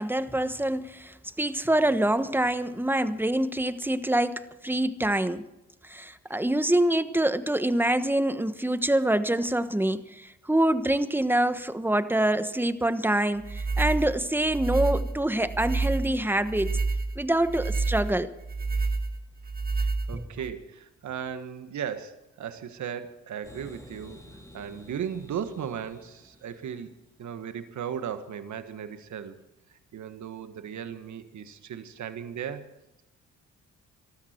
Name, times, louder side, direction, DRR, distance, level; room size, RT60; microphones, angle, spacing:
voice 1, 0.0-5.4 5.8-16.8 17.2-18.3 20.1-20.2, right 1 dB, 5° right, 1.2 m, -25 dB
sound 1, 13.4-20.5, right 3 dB, 30° right, 1.7 m, -29 dB
voice 2, 19.8-24.2 24.5-26.9 27.2-29.4 29.7-32.7, right 8 dB, 65° right, 1.6 m, -36 dB
sound 2, 23.4-27.3, equal, 10° left, 4.1 m, -51 dB
22.5 x 13.0 x 4.5 m
supercardioid pair, 55°, 31 cm